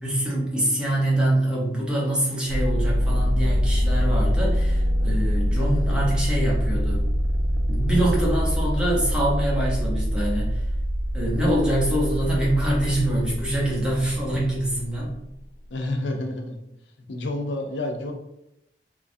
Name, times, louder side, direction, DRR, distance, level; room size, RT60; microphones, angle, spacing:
voice 1, 0.0-7.1 7.7-10.6 11.1-15.2, right 1 dB, 5° right, -5 dB, 0.8 m, -25 dB
sound 1, 2.5-15.1, equal, 75° right, 0.4 m, -24 dB
voice 2, 15.7-16.6 17.1-18.1, left 2 dB, 90° left, 3 dB, 0.5 m, -29 dB
3.0 x 2.3 x 2.6 m, 0.84 s
head